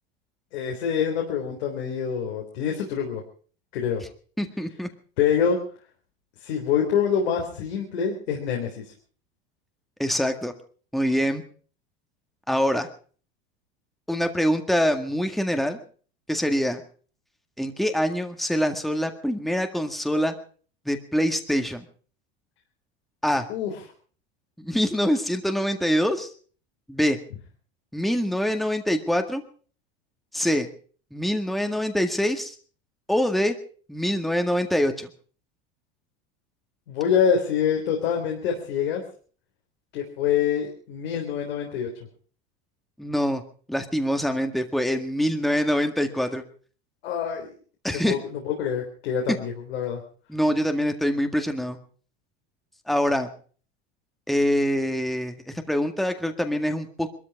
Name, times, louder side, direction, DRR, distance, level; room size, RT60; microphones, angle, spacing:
voice 1, 0.5-3.2 3.7-4.0 5.2-5.6 6.4-8.8 23.5-23.8 36.9-39.0 39.9-41.9 47.0-47.5 47.9-50.0, left 7 dB, 80° left, 1 dB, 3.8 m, -25 dB
voice 2, 4.4-4.9 10.0-10.5 10.9-11.4 12.5-12.9 14.1-15.8 16.3-16.8 17.6-20.3 20.9-21.9 23.2-23.4 24.6-26.3 26.9-27.2 27.9-29.4 30.3-30.7 31.1-32.6 33.1-33.5 33.9-35.1 43.0-43.4 43.7-46.4 47.8-48.1 50.3-51.8 52.9-53.3 54.3-57.1, equal, ahead, 6 dB, 1.8 m, -24 dB
22.0 x 13.5 x 4.9 m, 0.43 s
hypercardioid pair, 100°, 31 cm